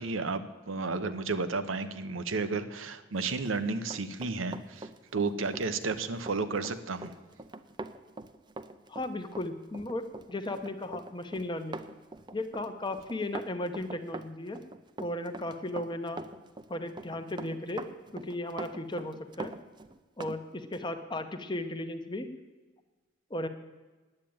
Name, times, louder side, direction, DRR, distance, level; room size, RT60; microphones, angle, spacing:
voice 1, 0.0-7.1, right 4 dB, 85° right, 11 dB, 0.9 m, -32 dB
Run, 3.3-20.4 20.7-20.9, right 2 dB, 25° right, 0.5 m, -43 dB
voice 2, 8.9-11.8 12.3-14.6 15.0-16.2 16.7-17.8 18.1-19.6 20.2-22.3 23.3-23.5, left 1 dB, 25° left, 8 dB, 0.8 m, -35 dB
9.9 x 8.9 x 8.7 m, 1.3 s
head